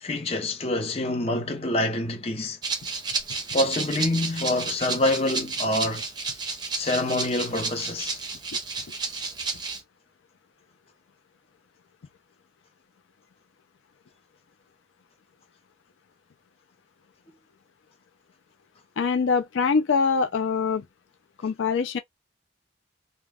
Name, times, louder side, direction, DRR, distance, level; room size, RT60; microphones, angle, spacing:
voice 1, 0.0-2.6 3.5-6.1 6.7-8.2, left 1 dB, 30° left, 0.6 m, -26 dB
Rattle (instrument), 2.6-9.8, right 4 dB, 25° right, 0.6 m, -31 dB
voice 2, 19.0-20.8 21.4-22.0, left 5 dB, 85° left, 0.4 m, -23 dB
2.2 x 2.1 x 3.3 m
head